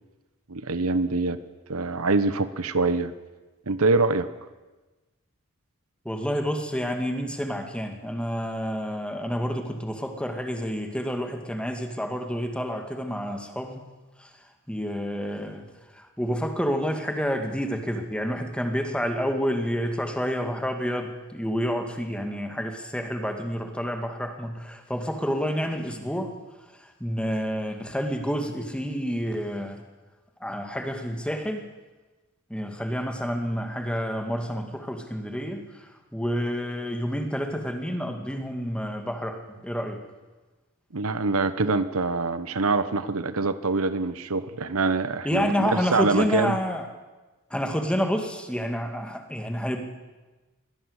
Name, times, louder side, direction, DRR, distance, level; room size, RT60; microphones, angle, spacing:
voice 1, 0.5-1.4 1.7-3.1 3.7-4.3 40.9-46.6, right 3 dB, 70° right, 13 dB, 1.0 m, -24 dB
voice 2, 6.0-13.9 14.2-14.3 14.7-15.7 15.9-26.4 26.8-29.8 30.4-31.7 32.5-40.0 45.2-46.9 47.5-49.8, equal, 5° left, 5 dB, 2.2 m, -29 dB
22.5 x 16.5 x 8.2 m, 1.2 s
head